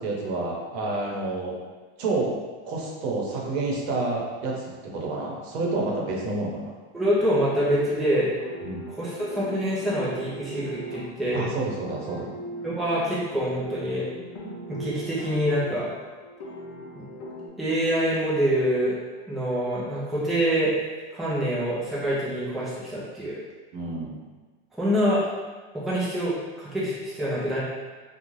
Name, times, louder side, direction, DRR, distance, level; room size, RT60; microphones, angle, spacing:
voice 1, 0.0-1.6 2.0-2.3 2.7-6.7 8.6-8.8 11.3-12.3 23.7-24.2, right 2 dB, 80° right, -2 dB, 0.8 m, -29 dB
voice 2, 6.9-8.3 8.9-11.4 12.6-14.0 14.7-15.9 16.9-17.0 17.6-19.0 19.3-20.7 21.1-23.4 24.7-25.3 25.7-27.6, equal, ahead, -9 dB, 0.4 m, -25 dB
sound 1, 7.0-17.5, right 1 dB, 50° left, 0.6 m, -39 dB
2.6 x 2.3 x 3.1 m, 1.3 s
supercardioid pair, 150°, 31 cm